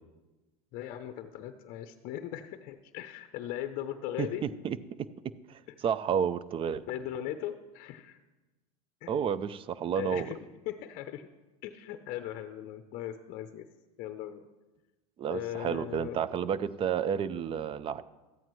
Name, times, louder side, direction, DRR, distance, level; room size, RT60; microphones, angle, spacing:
voice 1, 0.7-4.5 6.9-8.2 9.0-9.1 10.0-11.3 11.6-13.7 14.0-14.4 15.3-16.2, left 12 dB, 50° left, 9 dB, 0.6 m, -38 dB
voice 2, 4.2-4.8 5.5-6.8 9.1-10.3 15.2-18.0, right 8 dB, 30° right, 17 dB, 0.4 m, -31 dB
13.5 x 9.0 x 3.1 m, 1.1 s
supercardioid pair, 105°, 19 cm